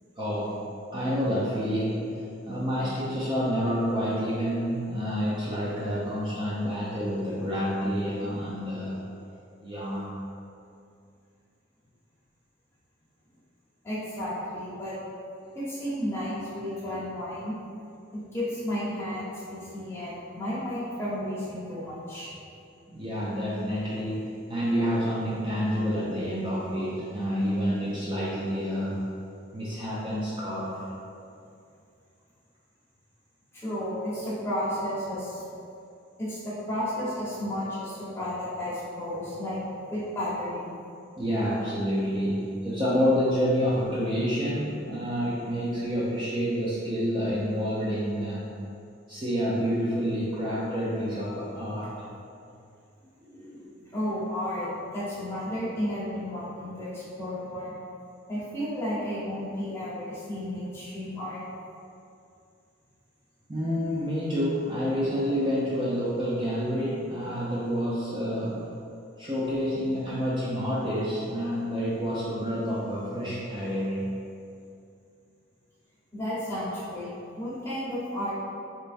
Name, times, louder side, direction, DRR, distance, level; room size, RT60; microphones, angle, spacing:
voice 1, 0.2-0.6 0.9-9.0 9.6-10.1 22.9-29.0 29.5-30.9 41.2-48.4 49.1-51.9 53.2-53.8 63.5-68.6 69.2-74.0, equal, 25° right, -8 dB, 0.5 m, -28 dB
voice 2, 13.8-14.9 15.5-17.5 18.3-22.3 33.5-35.4 36.2-39.6 39.9-40.7 53.9-57.7 58.3-61.4 76.1-78.3, equal, 10° left, -10 dB, 1.0 m, -32 dB
4.3 x 3.3 x 2.6 m, 2.5 s
head